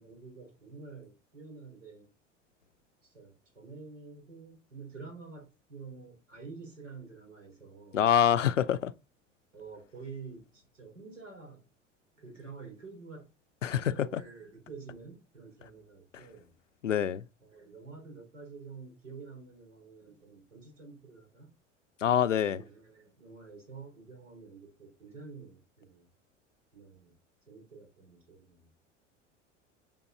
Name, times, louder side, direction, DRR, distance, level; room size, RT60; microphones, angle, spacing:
voice 1, 0.0-2.1 3.0-8.1 9.5-11.7 12.2-13.3 13.9-16.5 17.4-21.5 22.3-26.1 26.7-27.2 27.5-28.7, right 4 dB, 75° right, 4.4 m, -49 dB
voice 2, 7.9-8.9 13.6-14.2 16.8-17.2 22.0-22.6, left 9 dB, 80° left, 0.7 m, -26 dB
9.1 x 5.3 x 3.9 m
figure-of-eight pair, 75°, 37 cm